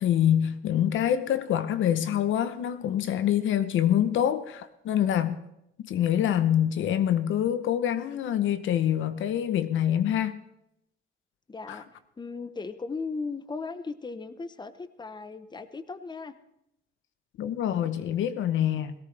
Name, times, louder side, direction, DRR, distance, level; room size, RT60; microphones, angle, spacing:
voice 1, 0.0-5.4 5.8-10.4 11.7-11.8 17.4-18.9, left 10 dB, 75° left, 0.9 m, -25 dB
voice 2, 11.5-11.9 12.2-16.3, left 4 dB, 20° left, 0.9 m, -37 dB
17.5 x 17.0 x 3.4 m
cardioid pair, 90°, 20 cm